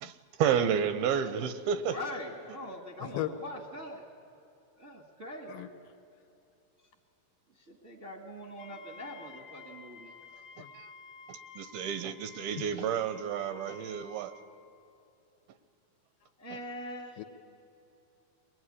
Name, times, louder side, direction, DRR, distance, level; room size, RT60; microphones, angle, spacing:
voice 1, 0.0-2.0 10.7-10.9 11.3-14.3, right 8 dB, 80° right, 11 dB, 2.5 m, -31 dB
voice 2, 1.7-4.0 4.8-5.6 7.5-10.1 16.4-17.2, left 1 dB, 40° right, -2 dB, 1.0 m, -43 dB
voice 3, 3.0-3.3 5.5-5.7 10.6-10.7 17.2-17.3, left 16 dB, 75° left, 8 dB, 2.3 m, -35 dB
Wind instrument woodwind instrument, 8.6-14.5, left 4 dB, 40° left, 1.3 m, -51 dB
22.0 x 20.5 x 9.8 m, 2.8 s
omnidirectional pair, 4.6 m